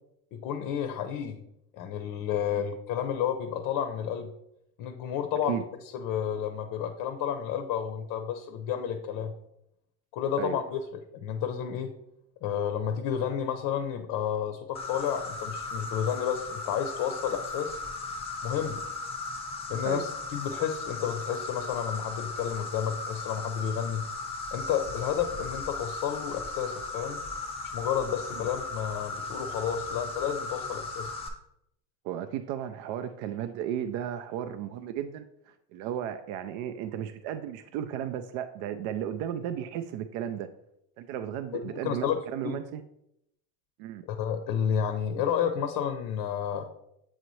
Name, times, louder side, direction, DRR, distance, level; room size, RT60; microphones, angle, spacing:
voice 1, 0.3-1.4 1.7-4.3 4.8-5.6 5.9-9.3 10.1-10.8 11.1-11.9 12.4-17.8 18.4-18.8 19.7-24.0 24.5-27.2 27.7-31.1 41.7-42.2 42.4-42.6 44.1-46.7, left 8 dB, 50° left, 0.6 m, -31 dB
Insect, 14.8-31.3, left 3 dB, 15° left, 0.7 m, -37 dB
voice 2, 32.0-40.5 41.0-42.8 43.8-44.0, right 10 dB, 60° right, 0.5 m, -34 dB
7.7 x 4.0 x 3.1 m
cardioid pair, 150°, 42 cm